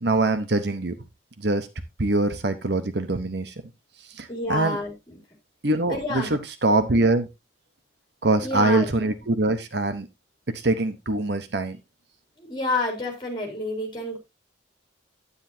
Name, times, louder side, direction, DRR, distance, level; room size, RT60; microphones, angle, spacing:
voice 1, 0.0-1.0 1.4-1.7 2.0-3.5 4.1-4.8 5.6-7.3 8.2-10.1 10.5-11.8, right 2 dB, 60° right, 10 dB, 1.0 m, -23 dB
voice 2, 4.3-5.2 5.9-6.3 8.4-8.9 12.4-14.2, left 2 dB, 25° left, 1 dB, 4.0 m, -29 dB
9.8 x 9.7 x 2.7 m, 0.23 s
head